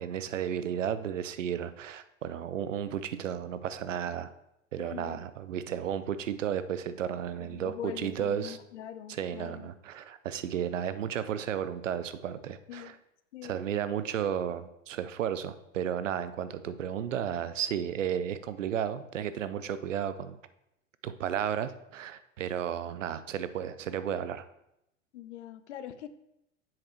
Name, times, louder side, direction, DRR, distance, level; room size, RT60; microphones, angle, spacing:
voice 1, 0.0-4.3 4.7-8.6 9.1-12.9 13.4-20.4 21.0-24.4, right 9 dB, 75° right, 13 dB, 0.7 m, -33 dB
voice 2, 4.8-5.2 7.4-9.7 12.7-13.0 13.3-13.6 25.1-26.1, left 10 dB, 65° left, 12 dB, 0.7 m, -43 dB
7.3 x 5.2 x 4.4 m, 0.82 s
figure-of-eight pair, 95°, 39 cm